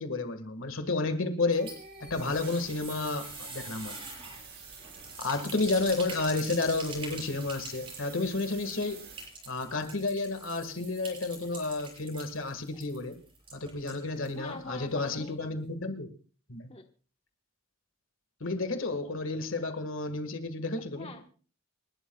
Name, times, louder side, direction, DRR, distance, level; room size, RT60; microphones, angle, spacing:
voice 1, 0.0-1.7 2.0-4.0 5.2-9.0 9.5-13.2 13.5-16.1 16.5-16.7 18.4-21.1, left 3 dB, 65° left, 1.7 m, -31 dB
sound 1, 1.4-14.4 14.7-14.8 15.1-15.2, right 3 dB, 25° right, 6.4 m, -46 dB
sound 2, 1.5-9.3, right 5 dB, 50° right, 5.1 m, -48 dB
voice 2, 14.3-15.4 16.7-16.8 21.0-21.3, left 3 dB, 30° left, 1.2 m, -44 dB
29.5 x 12.0 x 2.3 m
head